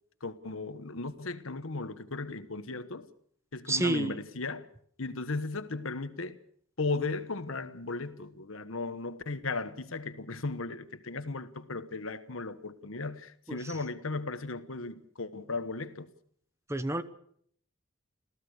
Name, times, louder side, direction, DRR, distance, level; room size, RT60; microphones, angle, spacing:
voice 1, 0.2-3.1 3.5-4.7 5.0-6.4 6.8-16.1, left 3 dB, 75° left, 1.3 m, -36 dB
voice 2, 3.7-4.1 13.5-13.6 16.7-17.0, right 2 dB, 15° right, 0.9 m, -28 dB
27.0 x 15.5 x 6.6 m
head